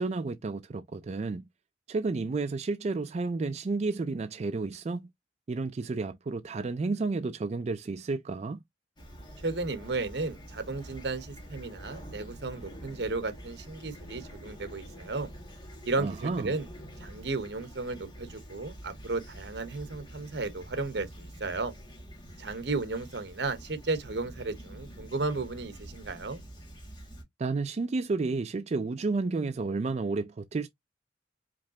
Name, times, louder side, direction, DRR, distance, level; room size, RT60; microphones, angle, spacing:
voice 1, 0.0-1.4 1.9-5.1 5.5-8.6 16.0-16.6 27.4-30.7, right 3 dB, 35° right, 0.3 m, -31 dB
Fowl / Chirp tweet, 9.0-27.2, equal, 25° left, 1.7 m, -47 dB
voice 2, 9.4-15.3 15.8-16.7 17.0-21.7 22.4-26.4, right 3 dB, 75° right, 1.0 m, -34 dB
5.2 x 3.1 x 2.7 m
head